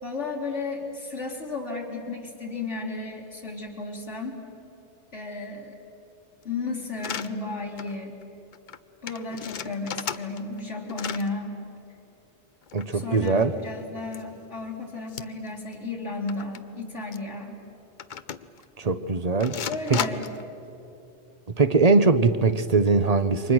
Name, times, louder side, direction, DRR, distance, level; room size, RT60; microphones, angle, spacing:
voice 1, 0.0-4.4 5.1-5.8 6.4-8.2 9.0-11.6 12.9-17.6 19.7-20.3, left 3 dB, 75° left, -2 dB, 3.3 m, -33 dB
sound 1, 7.0-7.3 7.8-8.0 8.2-8.3 8.5-8.8 9.1-10.6 10.9-11.3 12.6-13.7 14.1-14.2 15.1-15.5 15.7-15.8 16.3-16.6 17.1-17.2 18.0-18.6 19.4-20.4, left 7 dB, 50° left, 0.7 m, -34 dB
voice 2, 12.7-13.5 18.8-19.6 19.9-20.0 21.6-23.5, right 4 dB, 35° right, 11 dB, 0.8 m, -21 dB
29.0 x 24.5 x 6.2 m, 3.0 s
omnidirectional pair, 1.2 m